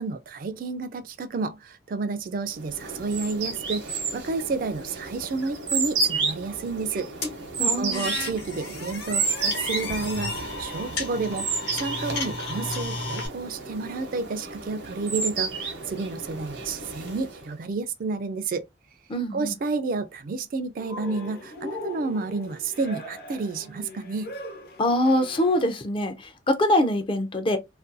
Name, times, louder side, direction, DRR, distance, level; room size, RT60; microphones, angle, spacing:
voice 1, 0.0-7.1 7.7-18.6 19.3-24.3, right 4 dB, 50° right, 0.3 m, -30 dB
sound 1, 2.6-17.5, right 4 dB, 85° right, 0.8 m, -32 dB
sound 2, 7.2-13.3, left 3 dB, 80° left, 1.0 m, -33 dB
voice 2, 7.6-8.1 19.1-19.5 24.8-27.6, left 1 dB, 30° left, 0.4 m, -24 dB
Cheering, 20.8-25.7, left 1 dB, 60° left, 0.8 m, -40 dB
2.5 x 2.2 x 2.5 m
head